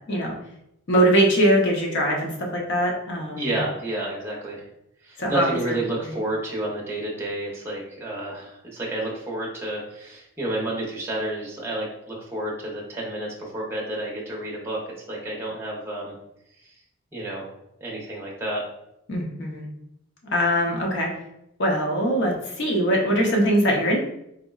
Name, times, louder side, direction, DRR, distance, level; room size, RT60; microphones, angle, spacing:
voice 1, 0.9-3.6 5.2-5.5 6.0-6.2 19.1-19.6 20.3-21.1 21.6-24.0, equal, 60° left, 0 dB, 0.7 m, -22 dB
voice 2, 3.3-4.7 5.0-14.8 15.1-16.2 16.6-16.7 17.1-17.5 17.8-18.6, right 1 dB, 10° right, -3 dB, 0.6 m, -30 dB
3.7 x 2.0 x 2.3 m, 0.81 s
head